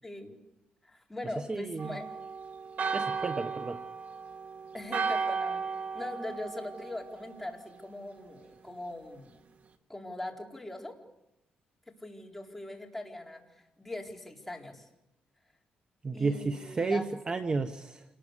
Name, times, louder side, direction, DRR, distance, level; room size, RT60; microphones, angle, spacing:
voice 1, 0.0-0.4 0.8-2.1 4.7-5.6 5.9-9.4 9.9-11.0 11.9-14.9 16.1-17.4, left 1 dB, 5° left, 0 dB, 4.3 m, -41 dB
voice 2, 1.5-2.0 2.9-3.8 16.0-18.0, right 4 dB, 25° right, 8 dB, 1.1 m, -32 dB
Church bell, 1.8-7.5, right 5 dB, 50° right, 1.8 m, -35 dB
28.0 x 20.0 x 8.2 m, 0.91 s
cardioid pair, 125°, 3 cm